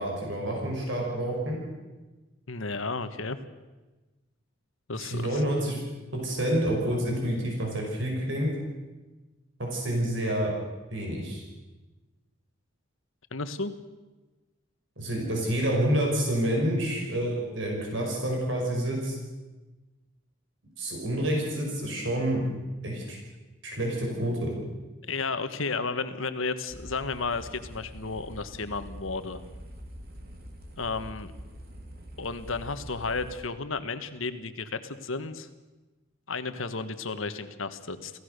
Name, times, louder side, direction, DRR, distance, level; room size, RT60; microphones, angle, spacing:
voice 1, 0.0-1.6 4.9-5.8 6.1-8.5 9.6-10.5 10.9-11.4 15.0-19.1 20.8-22.4 22.8-23.2 23.6-24.5, right 1 dB, 65° right, -1 dB, 5.6 m, -28 dB
voice 2, 2.5-3.4 4.9-5.4 13.3-13.7 25.1-29.4 30.8-31.3 32.2-35.5 36.3-38.1, left 4 dB, 75° left, 10 dB, 1.4 m, -33 dB
sound 1, 26.7-33.4, equal, 45° right, 3.1 m, -44 dB
28.0 x 16.0 x 6.7 m, 1.2 s
head